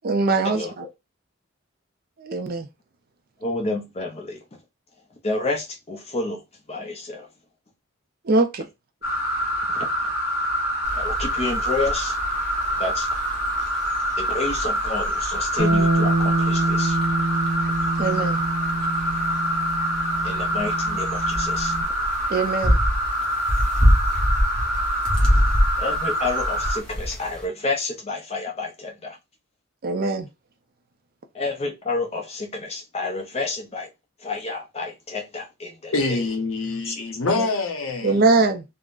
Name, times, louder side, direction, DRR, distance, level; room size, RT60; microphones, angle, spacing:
voice 1, 0.0-0.8 2.2-2.7 8.2-8.7 18.0-18.4 22.3-22.8 25.3-25.4 29.8-30.3 37.4-37.5 38.0-38.6, right 3 dB, 45° right, 0.4 m, -22 dB
voice 2, 3.4-4.4 5.2-6.4 6.7-7.3 9.7-9.9 10.9-12.2 12.8-13.1 14.2-17.0 20.2-21.7 25.8-29.2 31.3-33.9 34.2-36.2 36.9-37.0, left 3 dB, 30° left, 0.5 m, -29 dB
sound 1, 9.0-26.8, equal, 45° left, 1.2 m, -26 dB
sound 2, 10.8-27.4, equal, 5° left, 0.8 m, -27 dB
Bass guitar, 15.6-21.8, right 2 dB, 90° right, 1.0 m, -25 dB
voice 3, 35.9-38.2, left 3 dB, 80° left, 0.8 m, -25 dB
3.6 x 2.0 x 2.4 m
head